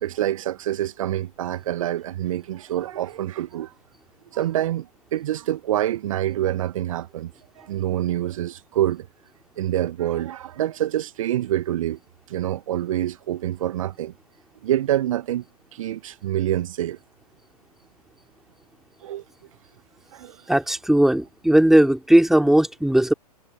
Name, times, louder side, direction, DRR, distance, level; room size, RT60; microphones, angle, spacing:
voice 1, 0.0-3.7 4.3-9.1 9.6-12.0 12.3-14.1 14.6-15.4 15.7-17.0 19.0-19.2 20.1-20.4, right 12 dB, 55° right, 1.5 m, -26 dB
voice 2, 20.5-23.1, right 1 dB, ahead, 3.0 m, -17 dB
figure-of-eight pair, 105°, 20 cm